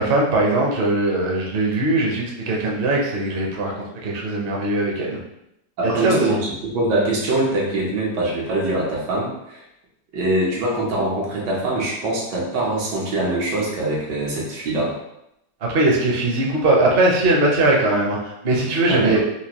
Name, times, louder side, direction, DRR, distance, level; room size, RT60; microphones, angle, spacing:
voice 1, 0.0-5.2 5.8-6.4 15.7-19.2, right 2 dB, 50° right, -2 dB, 0.7 m, -20 dB
voice 2, 5.8-9.6 10.1-14.9 18.9-19.2, right 2 dB, 85° right, -4 dB, 1.7 m, -23 dB
4.3 x 2.5 x 2.9 m, 0.83 s
omnidirectional pair, 1.8 m